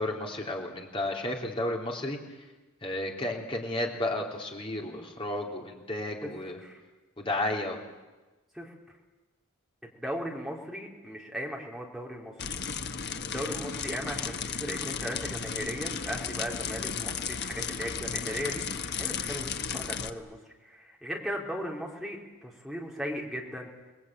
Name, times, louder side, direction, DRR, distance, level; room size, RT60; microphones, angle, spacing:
voice 1, 0.0-2.2 2.8-6.6 7.2-7.8, left 1 dB, 25° left, 0 dB, 3.2 m, -32 dB
voice 2, 9.8-12.3 13.2-23.7, equal, ahead, -2 dB, 3.7 m, -37 dB
sound 1, 12.4-20.1, left 6 dB, 50° left, 1.1 m, -34 dB
29.0 x 20.5 x 9.0 m, 1.2 s
head